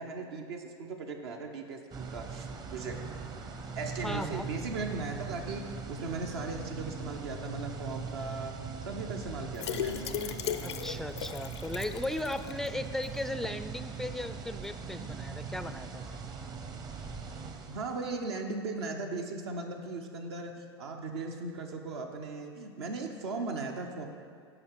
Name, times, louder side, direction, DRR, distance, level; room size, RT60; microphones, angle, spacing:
voice 1, 0.0-3.0 3.8-8.5 8.8-10.4 17.7-24.1, right 3 dB, 70° right, 2 dB, 0.9 m, -38 dB
sound 1, 1.9-18.3, right 5 dB, 30° right, 0.8 m, -41 dB
voice 2, 4.0-4.5 10.6-16.2, left 1 dB, 5° left, 10 dB, 0.4 m, -37 dB
sound 2, 9.5-12.7 13.0-13.1 13.4-13.5, left 9 dB, 80° left, 0.5 m, -36 dB
12.5 x 5.0 x 4.7 m, 2.1 s
hypercardioid pair, 95°, 14 cm